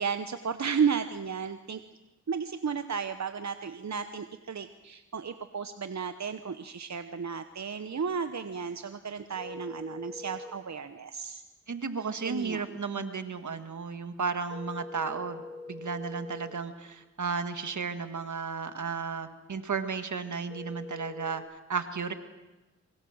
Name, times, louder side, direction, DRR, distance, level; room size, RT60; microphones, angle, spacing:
voice 1, 0.0-1.8 2.3-11.4 12.2-12.8, right 6 dB, 70° right, 9 dB, 0.9 m, -33 dB
sound 1, 9.4-10.5 14.5-16.5 20.5-21.4, left 3 dB, 20° left, 3.8 m, -43 dB
voice 2, 11.7-21.4 21.7-22.1, right 5 dB, 85° right, 8 dB, 1.6 m, -34 dB
25.5 x 23.5 x 6.4 m, 1.1 s
cardioid pair, 45°, 29 cm